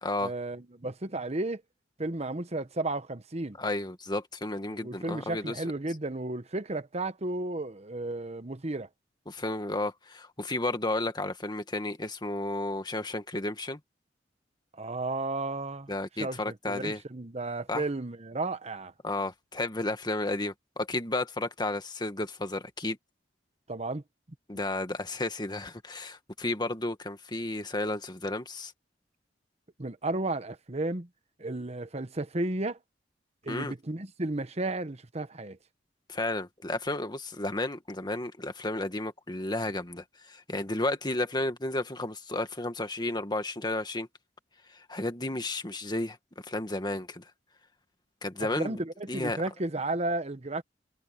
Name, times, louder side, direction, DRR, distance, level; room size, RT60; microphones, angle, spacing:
voice 1, 0.2-1.6 2.0-3.6 4.8-8.9 14.8-15.9 16.2-18.9 23.7-24.0 29.8-31.1 31.4-32.8 33.4-35.6 48.4-50.6, right 2 dB, 35° right, 1.1 m, -33 dB
voice 2, 3.6-5.6 9.3-13.8 15.9-17.0 17.7-17.8 19.0-23.0 24.5-28.7 33.5-33.7 36.1-44.1 44.7-46.2 46.5-47.2 48.2-48.8 49.1-49.4, left 2 dB, 25° left, 1.8 m, -32 dB
head